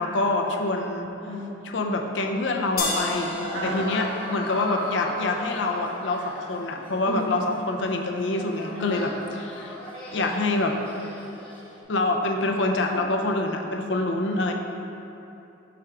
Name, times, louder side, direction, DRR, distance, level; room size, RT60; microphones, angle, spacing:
voice 1, 0.0-1.1 1.6-3.3 3.6-9.7 10.1-10.8 11.9-14.5, left 2 dB, 70° left, 3 dB, 0.5 m, -26 dB
voice 2, 1.2-1.5 3.3-4.1 7.1-7.2 8.7-9.0, left 1 dB, 90° right, -6 dB, 1.3 m, -32 dB
sound 1, 2.8-8.7, left 2 dB, 50° left, 0.9 m, -35 dB
sound 2, 3.7-11.8, left 1 dB, 25° left, 1.0 m, -39 dB
5.0 x 3.5 x 5.6 m, 2.8 s
head